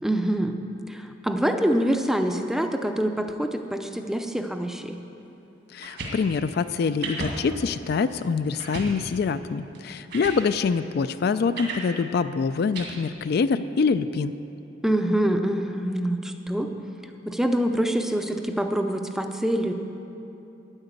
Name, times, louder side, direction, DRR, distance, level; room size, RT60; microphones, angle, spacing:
voice 1, 0.0-0.6 0.9-5.0 14.8-16.7 17.3-19.7, right 1 dB, ahead, 6 dB, 0.5 m, -25 dB
voice 2, 5.7-14.3, left 5 dB, 55° left, 11 dB, 0.3 m, -25 dB
sound 1, 5.8-6.2 7.0-7.4 7.9-8.0 8.6-8.9 9.7-9.8 10.1-10.4 11.5-11.9 12.7-12.8, right 2 dB, 65° right, 2.1 m, -33 dB
9.6 x 9.0 x 8.0 m, 2.9 s
head